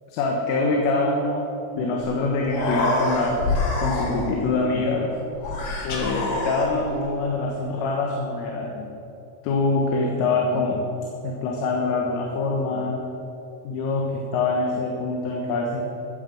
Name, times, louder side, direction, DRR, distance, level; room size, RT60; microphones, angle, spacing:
voice 1, 0.1-1.5 1.7-3.4 3.8-5.2 5.8-8.9 9.5-10.8 11.2-13.0 13.6-16.0, left 3 dB, 85° left, -1 dB, 3.9 m, -24 dB
Human voice, 2.1-2.2 2.4-4.5 5.4-7.1, left 2 dB, 55° left, 2.1 m, -26 dB
15.0 x 9.0 x 7.7 m, 2.8 s
omnidirectional pair, 5.7 m